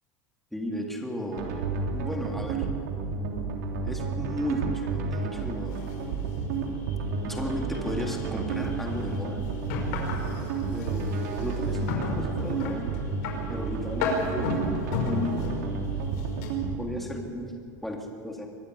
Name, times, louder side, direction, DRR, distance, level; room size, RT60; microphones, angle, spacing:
voice 1, 0.5-1.6 1.9-2.7 3.8-5.8 7.2-9.5 10.7-13.0 13.5-15.7 16.8-17.5 17.8-18.5, left 1 dB, ahead, 0 dB, 3.4 m, -34 dB
sound 1, 1.3-16.8, right 4 dB, 80° right, 3.3 m, -31 dB
sound 2, 5.4-16.5, left 4 dB, 70° left, 5.5 m, -35 dB
24.0 x 12.5 x 10.0 m, 2.5 s
supercardioid pair, 120°, 9 cm